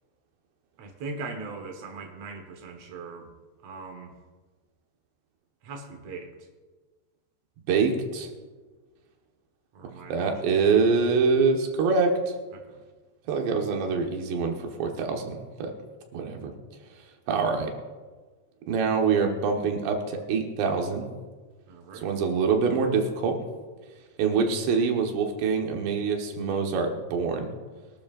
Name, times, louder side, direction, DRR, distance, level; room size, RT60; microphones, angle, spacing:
voice 1, 0.8-3.4 3.6-4.2 5.6-6.3 9.7-10.6 12.5-12.8 21.7-22.2, right 3 dB, 55° right, 4 dB, 1.9 m, -40 dB
voice 2, 7.7-8.3 10.1-12.2 13.3-15.7 16.1-16.5 17.3-17.7 18.7-21.1 22.0-23.4 24.2-27.6, right 5 dB, 85° right, 2 dB, 3.6 m, -25 dB
24.0 x 12.5 x 2.6 m, 1.4 s
omnidirectional pair, 4.8 m